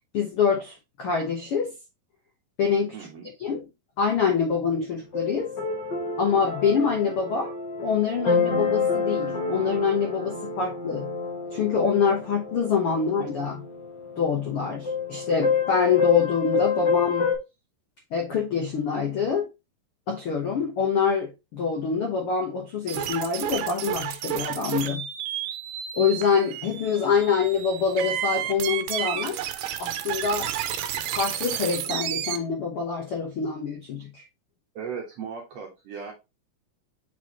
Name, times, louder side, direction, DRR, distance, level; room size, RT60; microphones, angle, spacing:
voice 1, 0.1-1.7 2.6-2.9 3.4-3.6 4.0-5.5 6.2-7.5 7.8-11.1 11.5-13.6 14.2-17.3 18.1-19.4 20.1-25.1 25.9-29.4 29.8-30.5 31.0-34.2, left 6 dB, 70° left, 1.3 m, -25 dB
voice 2, 2.9-3.3 34.7-36.1, right 6 dB, 60° right, 1.8 m, -37 dB
sound 1, 5.1-17.4, left 5 dB, 50° left, 1.3 m, -28 dB
sound 2, 22.9-32.4, right 11 dB, 75° right, 2.2 m, -31 dB
6.9 x 4.7 x 3.0 m
omnidirectional pair, 4.3 m